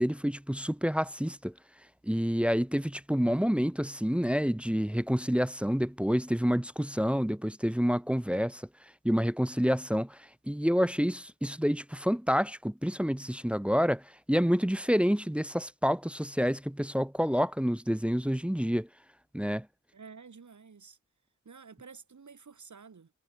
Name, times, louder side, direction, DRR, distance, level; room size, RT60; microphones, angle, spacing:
voice 1, 0.0-1.5 2.0-8.6 9.0-10.2 10.5-14.0 14.3-18.9 19.3-19.7, equal, 5° right, 0.5 m, -28 dB
voice 2, 19.9-21.0 21.4-23.1, right 5 dB, 65° right, 4.9 m, -50 dB
cardioid pair, 55°, 32 cm